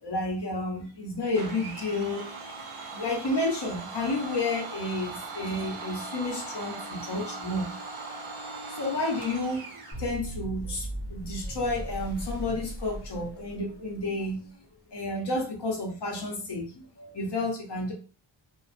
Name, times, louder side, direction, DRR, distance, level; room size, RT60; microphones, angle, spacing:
voice 1, 0.0-2.3 2.9-7.7 8.7-9.7 10.0-14.6 14.9-17.9, left 2 dB, 55° left, 0 dB, 0.8 m, -31 dB
Domestic sounds home sounds, 1.3-10.0, right 3 dB, 80° right, 0.9 m, -40 dB
sound 1, 9.9-14.0, right 1 dB, 20° left, 0.9 m, -38 dB
2.5 x 2.3 x 2.4 m, 0.38 s
wide cardioid pair, 115°, 49 cm